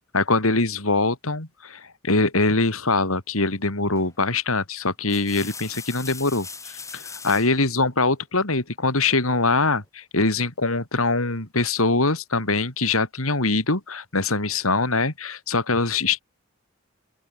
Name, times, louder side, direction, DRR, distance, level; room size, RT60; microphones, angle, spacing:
voice 1, 0.1-16.2, left 3 dB, 85° left, 4.2 m, -23 dB
sound 1, 4.0-4.3 4.9-7.6 9.1-9.7, left 5 dB, 15° left, 5.3 m, -40 dB
open air
head